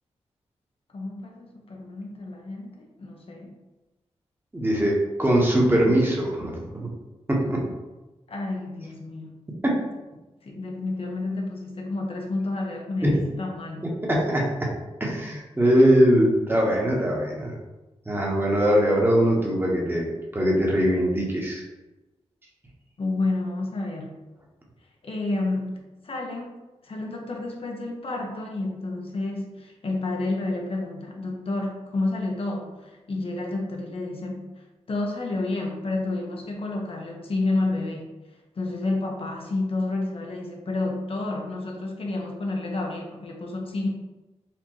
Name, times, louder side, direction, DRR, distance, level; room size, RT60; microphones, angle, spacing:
voice 1, 0.9-3.5 8.3-9.3 10.4-13.9 15.8-15.9 23.0-24.2 25.0-26.6 26.8-38.1 38.6-43.9, left 2 dB, 55° left, 1 dB, 0.6 m, -30 dB
voice 2, 4.5-6.9 7.3-7.7 9.6-9.7 13.0-13.2 14.0-14.7 15.0-17.5 18.1-21.6, equal, 20° right, -3 dB, 1.0 m, -21 dB
4.3 x 2.5 x 3.0 m, 1.1 s
cardioid pair, 65°, 11 cm